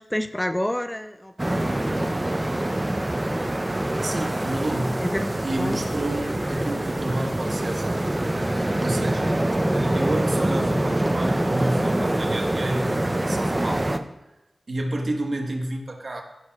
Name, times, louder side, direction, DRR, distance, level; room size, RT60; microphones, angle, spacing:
voice 1, 0.0-2.0 5.1-5.3 5.6-5.8 9.6-9.7, left 1 dB, 15° left, 9 dB, 0.4 m, -29 dB
sound 1, 1.4-14.0, right 1 dB, 25° right, 0.6 m, -25 dB
voice 2, 4.0-5.1 5.4-8.1 8.8-13.9 14.7-16.2, right 1 dB, 60° right, 2 dB, 1.5 m, -30 dB
14.5 x 6.3 x 2.4 m, 0.97 s
cardioid pair, 45°, 0 cm